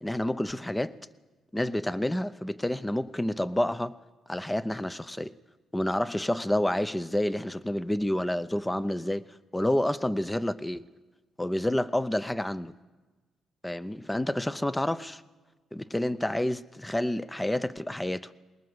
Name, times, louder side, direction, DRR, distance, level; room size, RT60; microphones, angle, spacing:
voice 1, 0.0-1.0 1.5-4.0 4.3-5.3 5.7-9.3 9.5-10.9 11.4-12.7 13.6-15.2 15.7-18.3, left 1 dB, 10° left, 0.7 m, -29 dB
20.5 x 19.0 x 8.0 m
cardioid pair, 90°, 0 cm